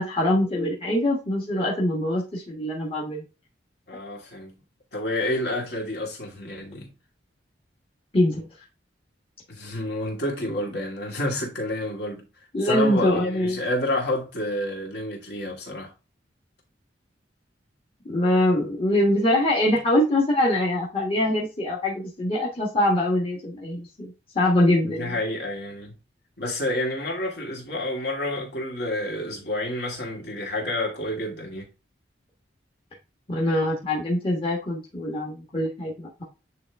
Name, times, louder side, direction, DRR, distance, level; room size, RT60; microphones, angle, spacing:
voice 1, 0.0-3.2 8.1-8.5 12.5-13.6 18.1-25.1 33.3-36.2, left 1 dB, 30° left, 1.5 m, -23 dB
voice 2, 3.9-4.6 4.9-6.9 9.5-12.2 12.6-15.9 24.8-26.0 26.4-31.7, left 1 dB, 60° left, 2.5 m, -29 dB
9.4 x 3.3 x 3.5 m
head